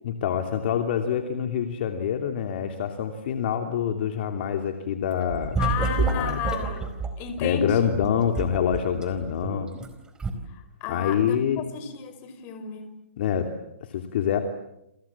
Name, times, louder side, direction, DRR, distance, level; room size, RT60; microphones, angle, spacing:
voice 1, 0.0-5.6 6.0-6.4 7.4-9.7 10.9-11.6 13.2-13.5 13.9-14.4, left 8 dB, 55° left, 5 dB, 3.0 m, -26 dB
sound 1, 5.1-7.1 7.9-9.9 10.2-10.3, right 4 dB, 10° right, 4.3 m, -28 dB
voice 2, 5.6-7.9 8.5-8.6 10.8-11.4 11.7-12.9, left 7 dB, 30° left, 10 dB, 5.4 m, -32 dB
29.0 x 27.0 x 7.4 m, 0.83 s
hypercardioid pair, 140°, 7 cm